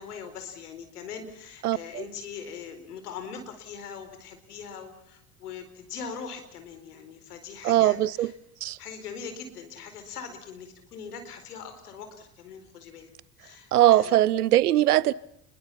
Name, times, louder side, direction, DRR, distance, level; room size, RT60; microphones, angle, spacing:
voice 1, 0.0-8.3 8.8-13.1 13.4-14.2, left 6 dB, 80° left, 4.6 m, -41 dB
voice 2, 1.6-2.0 7.6-8.3 8.6-8.8 13.7-15.1, right 14 dB, 85° right, 0.9 m, -21 dB
30.0 x 22.0 x 5.8 m
hypercardioid pair, 70°, 45 cm